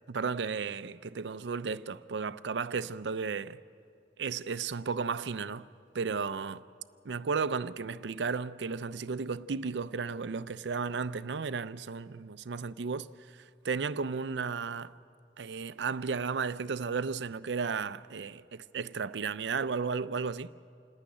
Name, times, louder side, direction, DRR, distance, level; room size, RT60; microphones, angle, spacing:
voice 1, 0.1-3.6 4.2-5.7 5.9-6.6 7.0-13.1 13.3-14.9 15.4-20.5, right 5 dB, 90° right, 0.5 m, -34 dB
27.5 x 10.0 x 9.9 m
head